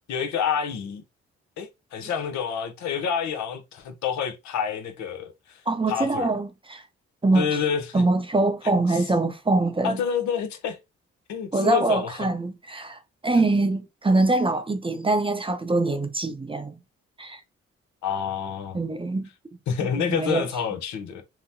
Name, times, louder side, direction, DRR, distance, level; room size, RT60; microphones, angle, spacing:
voice 1, 0.1-1.0 1.6-5.6 5.9-6.3 7.3-8.0 8.6-9.0 9.8-10.8 11.3-12.2 13.4-13.5 18.0-18.8 19.7-21.2, left 7 dB, 75° left, 0.7 m, -28 dB
voice 2, 5.7-6.8 7.2-7.5 7.9-10.0 11.5-16.8 17.2-17.4 18.7-19.3 19.8-20.5, right 2 dB, 20° right, 0.6 m, -24 dB
2.9 x 2.1 x 2.6 m
supercardioid pair, 50°, 29 cm